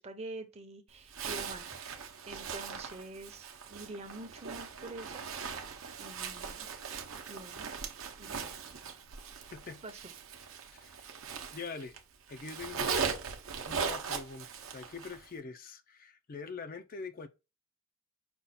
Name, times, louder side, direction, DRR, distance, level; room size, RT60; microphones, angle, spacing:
voice 1, 0.0-5.2 6.0-6.7 7.3-7.7 8.2-8.5 9.8-10.1, right 2 dB, 30° right, 0.7 m, -46 dB
Zipper (clothing), 1.1-12.0 12.3-15.2, right 6 dB, 65° right, 0.7 m, -39 dB
voice 2, 9.5-9.8 10.8-11.1 11.5-12.0 12.3-13.1 13.6-17.3, left 5 dB, 40° left, 0.4 m, -44 dB
5.4 x 2.3 x 4.1 m
head